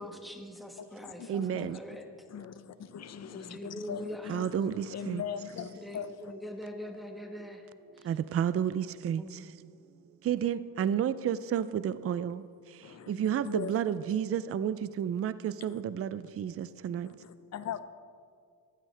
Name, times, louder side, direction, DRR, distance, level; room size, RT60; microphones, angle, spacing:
voice 1, 0.0-2.0 3.2-4.3 5.7-8.1 9.2-9.4, equal, ahead, 3 dB, 1.2 m, -43 dB
voice 2, 0.8-1.8 2.3-6.3 12.8-13.8 14.0-14.1 15.7-15.8 17.0-17.8, left 8 dB, 45° left, 13 dB, 0.6 m, -41 dB
voice 3, 1.3-1.8 4.3-5.2 8.0-9.4 10.2-17.1, right 9 dB, 40° right, 15 dB, 0.4 m, -31 dB
15.0 x 9.8 x 3.3 m, 2.2 s
cardioid pair, 100°, 37 cm